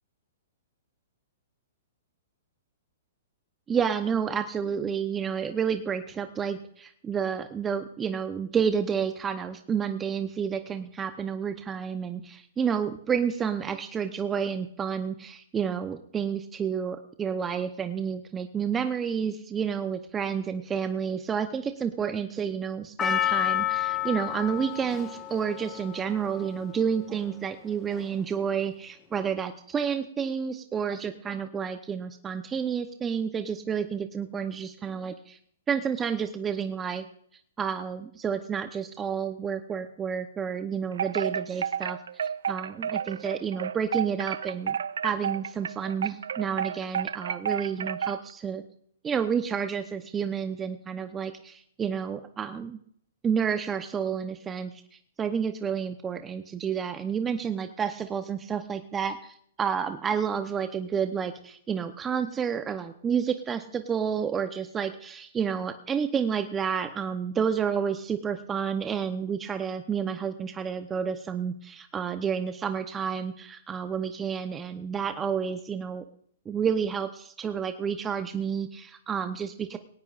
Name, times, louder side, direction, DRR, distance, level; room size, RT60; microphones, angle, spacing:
voice 1, 3.7-35.4 35.7-37.1 37.6-44.8 45.0-48.6 49.0-52.8 53.2-54.8 55.2-76.0 76.5-79.8, right 7 dB, 20° right, 8 dB, 0.8 m, -30 dB
Percussion, 23.0-27.3 28.0-28.1, left 12 dB, 20° left, 1.6 m, -30 dB
Wind chime, 40.9-48.3, right 8 dB, 80° right, 0.5 m, -31 dB
19.5 x 18.0 x 2.5 m, 0.63 s
hypercardioid pair, 135°, 0 cm